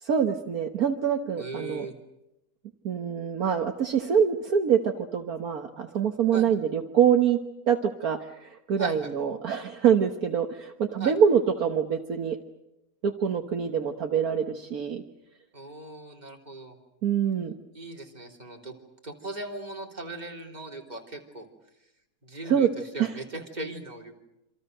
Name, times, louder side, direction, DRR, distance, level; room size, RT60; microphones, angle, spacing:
voice 1, 0.0-1.9 2.8-7.4 7.7-12.4 13.0-15.0 17.0-17.5 22.5-22.7 23.0-23.1, right 8 dB, 65° right, 5 dB, 1.8 m, -25 dB
voice 2, 1.4-1.9 6.3-6.5 8.8-9.1 11.0-11.1 15.5-16.8 17.7-18.7 19.0-21.5 22.2-22.7 22.9-24.2, right 2 dB, 25° right, 1 dB, 3.6 m, -38 dB
27.5 x 26.5 x 6.7 m, 0.89 s
omnidirectional pair, 1.7 m